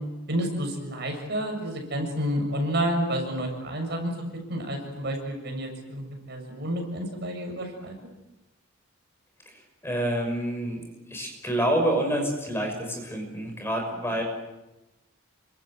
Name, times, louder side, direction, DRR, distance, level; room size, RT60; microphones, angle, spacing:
voice 1, 0.3-8.0, equal, 50° right, 3 dB, 7.2 m, -30 dB
voice 2, 9.5-14.2, right 1 dB, 10° left, 2 dB, 6.0 m, -28 dB
29.0 x 25.0 x 8.0 m, 0.99 s
head